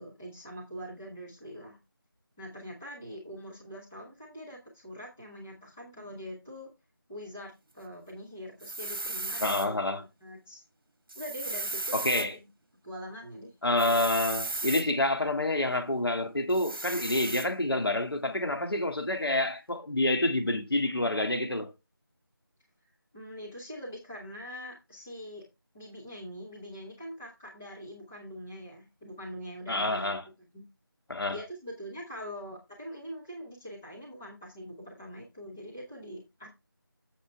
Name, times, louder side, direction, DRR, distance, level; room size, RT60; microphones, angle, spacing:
voice 1, 0.0-1.8 2.4-6.7 7.1-10.6 11.1-12.5 12.8-13.5 23.1-25.4 25.7-30.2 30.5-30.6 31.3-36.5, equal, 5° left, 0.7 m, -43 dB
sound 1, 8.6-9.7 11.1-12.3 13.8-14.9 16.5-17.5, right 2 dB, 65° right, 1.5 m, -35 dB
voice 2, 9.4-10.0 11.9-12.4 13.6-21.7 29.7-30.2 31.1-31.4, left 1 dB, 80° left, 2.2 m, -28 dB
8.5 x 7.3 x 3.4 m
figure-of-eight pair, 175°, 12 cm